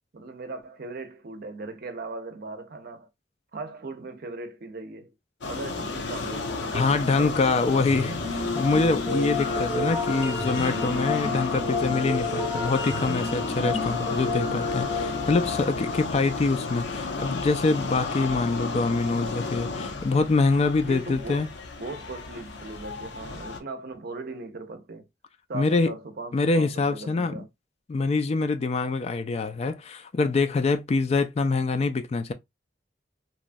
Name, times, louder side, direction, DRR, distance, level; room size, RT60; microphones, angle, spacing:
voice 1, 0.1-3.1 3.5-5.1 5.5-8.2 20.7-21.5 21.8-25.1 25.5-27.5, right 2 dB, 55° right, 0.6 m, -38 dB
sound 1, 5.4-23.6, left 3 dB, 90° left, 0.6 m, -33 dB
voice 2, 6.7-21.5 25.5-25.9 26.3-27.4 27.9-32.3, left 3 dB, 35° left, 0.3 m, -25 dB
sound 2, 7.9-17.0, left 3 dB, 10° left, 0.7 m, -31 dB
3.0 x 2.2 x 2.5 m
head